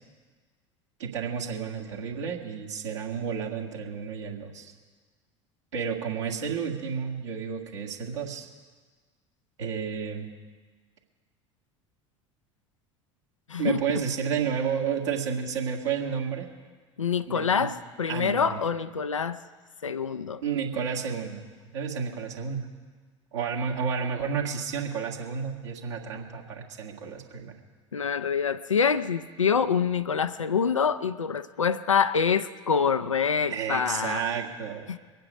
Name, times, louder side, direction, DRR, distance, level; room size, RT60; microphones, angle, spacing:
voice 1, 1.0-4.7 5.7-8.5 9.6-10.3 13.6-16.5 17.3-17.7 18.1-18.6 20.4-21.5 21.7-22.7 23.3-27.5 33.5-35.0, right 6 dB, 70° right, 0 dB, 1.9 m, -31 dB
voice 2, 13.5-13.8 17.0-19.4 19.8-20.4 27.9-34.2 34.9-35.0, left 6 dB, 85° left, 13 dB, 0.5 m, -26 dB
23.0 x 9.2 x 5.1 m, 1.4 s
figure-of-eight pair, 70°, 16 cm